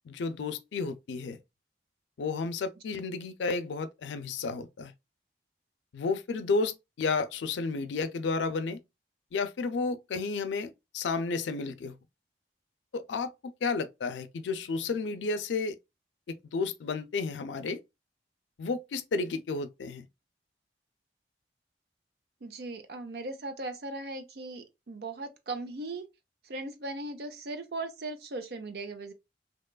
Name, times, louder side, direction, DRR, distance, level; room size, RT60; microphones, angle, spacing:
voice 1, 0.1-1.4 2.2-4.9 5.9-8.8 9.3-11.9 12.9-13.3 13.6-15.8 16.3-17.8 18.6-20.1, left 4 dB, 90° left, 0.4 m, -32 dB
voice 2, 22.4-26.1 26.4-29.1, right 2 dB, 60° right, 0.5 m, -38 dB
2.8 x 2.2 x 2.2 m
head